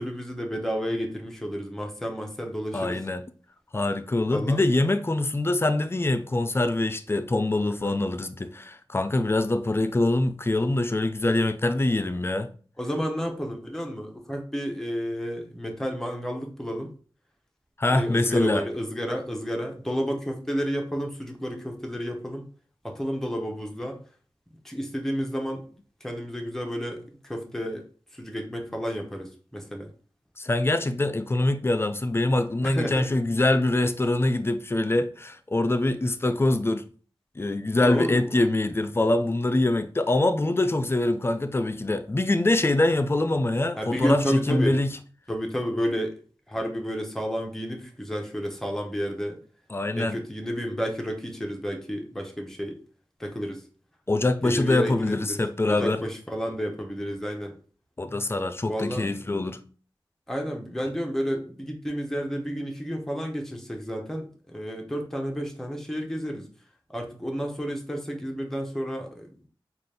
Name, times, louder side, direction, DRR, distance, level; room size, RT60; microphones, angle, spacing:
voice 1, 0.0-3.0 4.3-4.6 7.7-8.0 12.8-16.9 17.9-22.5 22.8-24.0 24.6-25.6 26.0-27.8 28.1-29.9 32.6-33.1 37.8-38.5 43.8-44.8 45.3-46.2 46.5-49.4 50.0-52.8 53.2-53.7 54.4-55.4 55.7-57.5 58.7-59.1 60.3-66.5 66.9-69.3, equal, 5° left, 0.9 m, -31 dB
voice 2, 2.7-3.2 3.7-12.5 17.8-18.6 30.4-36.9 37.4-44.9 49.7-50.2 54.1-56.0 58.0-59.6, left 2 dB, 25° left, 0.4 m, -24 dB
3.9 x 2.4 x 3.4 m
wide cardioid pair, 60°, 9 cm